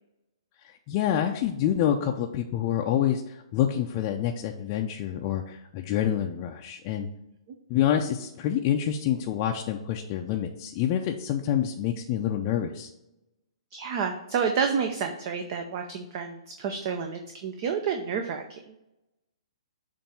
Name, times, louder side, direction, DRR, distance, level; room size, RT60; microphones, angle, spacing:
voice 1, 0.9-7.1 7.7-12.9, left 10 dB, 35° left, 2 dB, 0.5 m, -27 dB
voice 2, 13.7-18.8, right 6 dB, 40° right, 5 dB, 0.6 m, -30 dB
7.0 x 2.6 x 5.5 m, 0.90 s
figure-of-eight pair, 125°, 3 cm